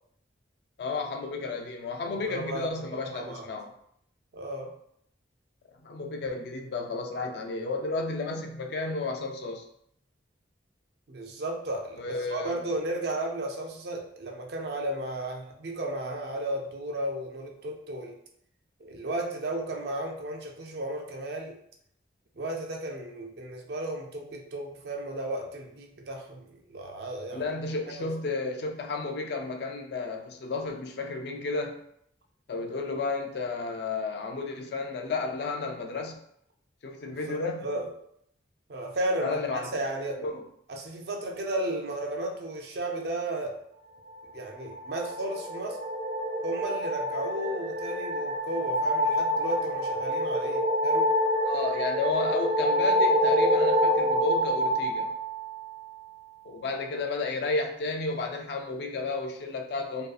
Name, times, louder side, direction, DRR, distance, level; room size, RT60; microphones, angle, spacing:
voice 1, 0.8-3.7 5.8-9.6 12.0-12.6 27.3-31.8 32.5-36.2 36.8-37.7 39.2-39.7 40.2-40.4 51.5-55.1 56.4-60.1, left 3 dB, 60° left, 3 dB, 0.3 m, -32 dB
voice 2, 2.3-3.5 4.3-4.7 11.1-18.2 18.8-21.6 22.4-27.4 28.0-28.1 37.3-37.9 38.7-40.2 40.7-43.6 44.3-45.8 46.4-51.1, right 1 dB, 55° right, 1 dB, 0.4 m, -34 dB
sound 1, 44.6-56.0, equal, 85° right, 1.0 m, -27 dB
2.6 x 2.3 x 2.4 m, 0.71 s
head